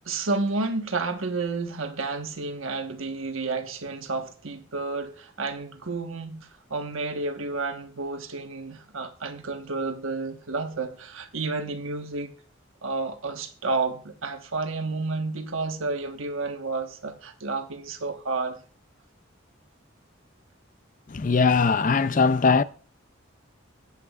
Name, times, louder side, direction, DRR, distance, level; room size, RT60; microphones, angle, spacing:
voice 1, 0.0-6.4 6.7-12.3 12.8-18.6, right 3 dB, 80° right, 1.3 m, -31 dB
voice 2, 21.1-22.6, left 4 dB, 40° left, 0.4 m, -20 dB
22.5 x 8.4 x 2.4 m
head